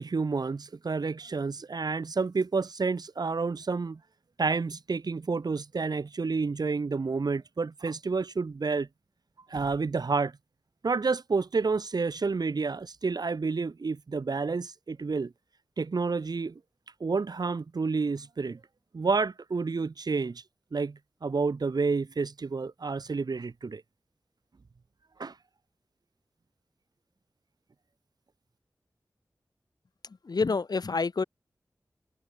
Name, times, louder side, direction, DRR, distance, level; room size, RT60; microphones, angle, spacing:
voice 1, 0.0-4.0 4.4-8.9 9.5-10.3 10.8-15.3 15.8-16.6 17.0-18.6 18.9-20.4 20.7-23.8 25.2-25.3, right 4 dB, 75° right, 2.6 m, -29 dB
voice 2, 30.2-31.2, left 4 dB, 70° left, 2.6 m, -27 dB
wide cardioid pair, 75°, 7 cm